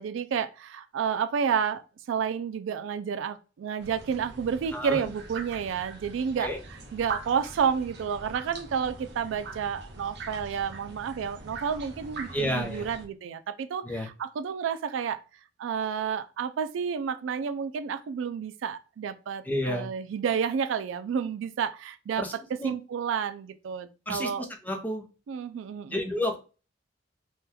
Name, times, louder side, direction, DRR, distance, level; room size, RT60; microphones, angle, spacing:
voice 1, 0.0-1.8 2.1-6.5 6.9-15.2 15.6-24.5 25.3-26.0, right 7 dB, 80° right, 0.3 m, -30 dB
sound 1, 3.8-13.1, right 3 dB, 60° right, 0.7 m, -42 dB
voice 2, 4.7-5.0 6.4-6.6 12.3-12.8 13.8-14.1 19.4-19.9 22.2-22.3 22.6-22.7 24.1-25.1 25.9-26.4, left 1 dB, 10° left, 0.5 m, -30 dB
3.5 x 2.2 x 2.8 m
head